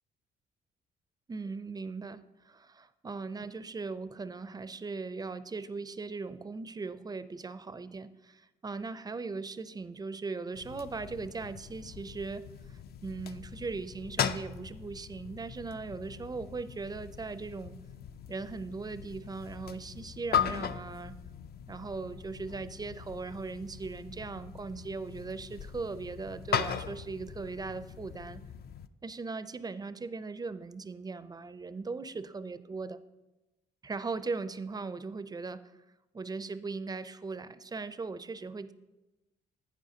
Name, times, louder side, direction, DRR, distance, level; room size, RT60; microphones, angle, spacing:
voice 1, 1.3-17.8 18.3-21.2 21.7-28.4 29.0-33.0 33.8-35.7 36.1-38.7, right 4 dB, 20° right, 14 dB, 0.4 m, -39 dB
sound 1, 10.5-28.9, left 8 dB, 50° left, 0.4 m, -39 dB
11.5 x 9.0 x 2.7 m, 1.1 s
cardioid pair, 90°, 20 cm